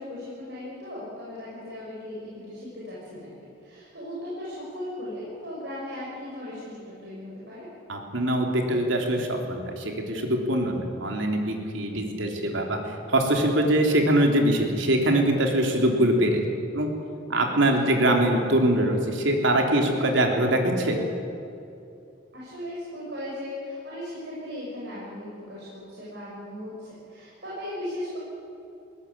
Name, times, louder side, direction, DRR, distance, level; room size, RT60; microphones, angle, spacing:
voice 1, 0.0-7.7 17.6-17.9 22.3-28.2, left 1 dB, 55° right, -7 dB, 6.6 m, -37 dB
voice 2, 7.9-16.9 17.3-21.0, right 1 dB, 75° right, 2 dB, 3.6 m, -23 dB
21.5 x 18.0 x 8.6 m, 2.7 s
head